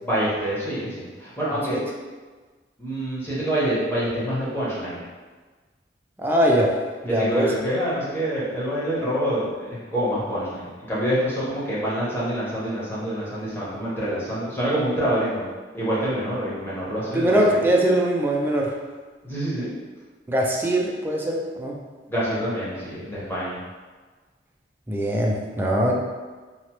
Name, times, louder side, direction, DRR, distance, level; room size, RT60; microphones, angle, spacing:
voice 1, 0.0-1.8 2.8-5.0 7.1-15.4 15.7-17.6 19.2-19.7 22.1-23.6, equal, 15° left, -9 dB, 0.9 m, -26 dB
voice 2, 6.2-6.7 7.0-7.5 17.1-18.7 20.3-21.7 24.9-25.9, right 1 dB, 10° right, -2 dB, 0.3 m, -21 dB
2.9 x 2.0 x 2.9 m, 1.4 s
head